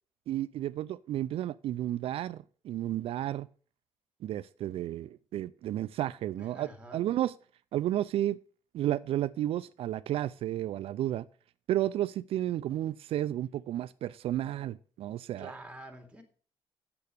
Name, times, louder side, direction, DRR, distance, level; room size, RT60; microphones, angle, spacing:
voice 1, 0.3-3.5 4.2-7.3 7.7-8.4 8.7-11.3 11.7-15.5, right 13 dB, 75° right, 0.4 m, -32 dB
voice 2, 6.3-7.0 15.4-16.2, right 1 dB, 10° right, 2.4 m, -47 dB
8.5 x 6.8 x 6.5 m
cardioid pair, 110°, 10 cm